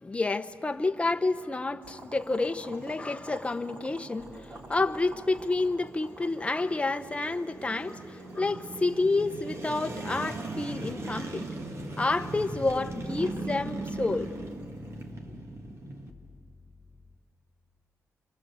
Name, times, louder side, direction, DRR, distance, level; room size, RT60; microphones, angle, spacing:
voice 1, 0.0-11.5 12.0-14.3, left 3 dB, 20° left, 1.0 m, -29 dB
sound 1, 0.9-16.1, right 2 dB, 50° right, 2.4 m, -40 dB
Boiling, 1.8-15.1, right 1 dB, 30° right, 3.1 m, -52 dB
sound 2, 4.2-5.9 12.6-17.2, left 3 dB, 40° left, 1.8 m, -53 dB
27.5 x 26.0 x 7.9 m
wide cardioid pair, 105°, 6 cm